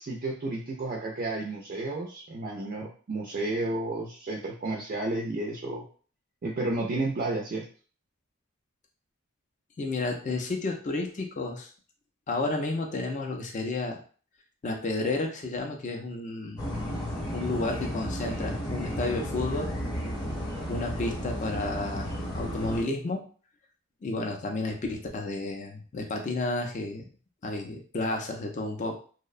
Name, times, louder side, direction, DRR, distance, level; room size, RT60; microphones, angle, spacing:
voice 1, 0.0-5.9 6.4-7.7, right 2 dB, 40° right, 0 dB, 0.3 m, -32 dB
voice 2, 9.8-11.7 12.3-14.0 14.6-16.7 17.3-19.7 20.7-23.3 24.0-27.1 27.4-29.0, left 2 dB, 35° left, 2 dB, 0.4 m, -31 dB
sound 1, 16.6-22.8, equal, 20° left, 0.8 m, -33 dB
2.6 x 2.1 x 2.4 m, 0.41 s
head